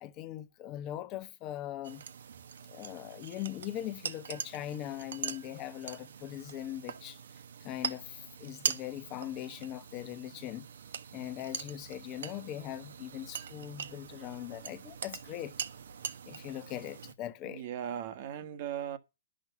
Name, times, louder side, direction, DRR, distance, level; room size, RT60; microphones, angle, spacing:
voice 1, 0.0-2.0 2.7-7.2 7.6-10.7 11.1-15.5 16.3-17.6, left 13 dB, 30° left, 1.0 m, -40 dB
sound 1, 1.8-17.1, right 7 dB, 75° right, 1.2 m, -42 dB
voice 2, 17.4-19.0, right 9 dB, 50° right, 1.6 m, -38 dB
10.5 x 6.5 x 6.8 m
hypercardioid pair, 135°, 0 cm